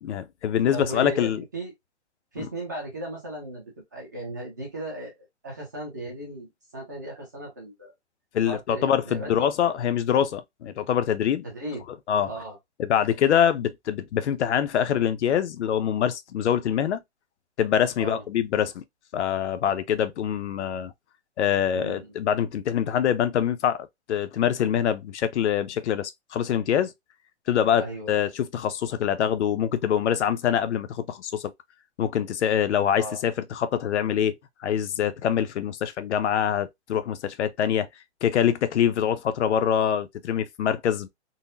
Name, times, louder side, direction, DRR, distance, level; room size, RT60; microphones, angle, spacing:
voice 1, 0.0-1.4 2.4-2.5 8.3-11.5 12.1-12.3 12.8-17.0 17.6-18.8 19.1-20.9 21.4-26.9 27.5-31.5 32.0-37.9 38.2-41.1, left 9 dB, 75° left, 0.5 m, -24 dB
voice 2, 0.7-1.7 2.3-3.6 3.9-5.1 5.4-7.9 8.4-9.5 11.4-11.9 12.3-12.6 18.0-18.2 21.7-22.1 27.8-28.2 32.9-33.2, right 1 dB, 15° right, 0.5 m, -36 dB
3.9 x 2.0 x 2.5 m
hypercardioid pair, 175°, 35 cm